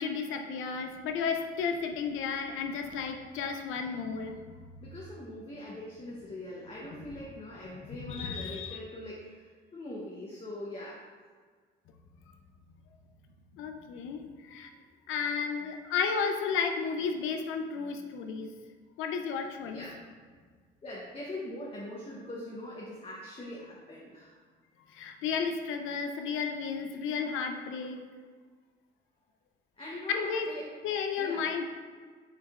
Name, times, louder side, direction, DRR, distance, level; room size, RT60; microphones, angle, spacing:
voice 1, 0.0-4.4 6.9-7.0 8.1-8.8 13.6-14.2 14.5-14.7 15.1-18.5 19.0-19.8 24.9-28.0 30.1-30.5 30.8-31.6, left 6 dB, 85° left, 5 dB, 0.5 m, -33 dB
voice 2, 4.8-11.1 19.7-19.9 20.8-24.4 29.8-30.7 31.2-31.5, left 1 dB, 30° left, -4 dB, 0.8 m, -42 dB
6.4 x 3.4 x 2.4 m, 1.6 s
cardioid pair, 90°, 20 cm